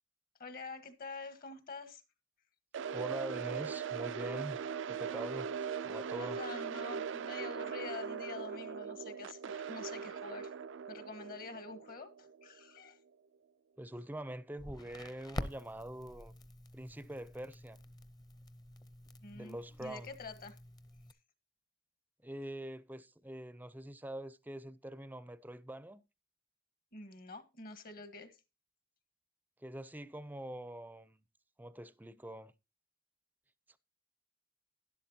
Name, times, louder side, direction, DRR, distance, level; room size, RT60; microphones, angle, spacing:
voice 1, 0.4-2.0 6.3-10.5 10.9-13.0 19.2-20.6 26.9-28.4, left 4 dB, 50° left, 1.4 m, -47 dB
sound 1, 2.7-12.8, right 6 dB, 85° right, 0.4 m, -40 dB
voice 2, 2.9-4.6 4.9-6.4 13.8-16.3 16.7-17.8 19.3-20.1 22.2-26.0 29.6-31.2 31.6-32.5 33.7-33.8, right 1 dB, 10° right, 0.5 m, -44 dB
Crackle, 14.6-21.1, left 1 dB, 20° left, 0.7 m, -47 dB
12.0 x 11.0 x 2.8 m
head